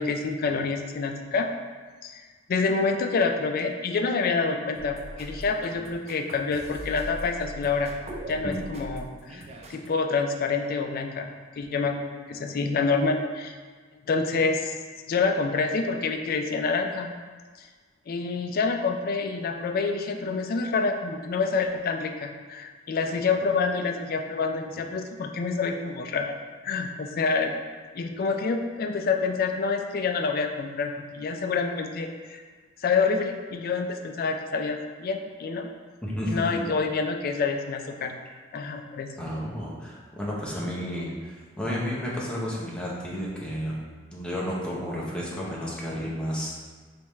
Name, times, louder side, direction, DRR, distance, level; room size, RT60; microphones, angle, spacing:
voice 1, 0.0-1.5 2.0-2.2 2.5-7.9 8.3-11.3 11.6-13.6 14.0-14.8 15.1-17.2 17.6-17.7 18.1-26.3 26.6-27.5 27.9-32.4 32.8-35.7 36.3-38.1 38.5-39.1, left 4 dB, 50° left, 5 dB, 0.3 m, -27 dB
sound 1, 4.7-9.9, right 1 dB, 35° right, 0.4 m, -41 dB
voice 2, 36.0-36.4 39.2-43.8 44.1-46.6, equal, 5° left, -6 dB, 0.7 m, -32 dB
3.5 x 3.2 x 3.1 m, 1.5 s
head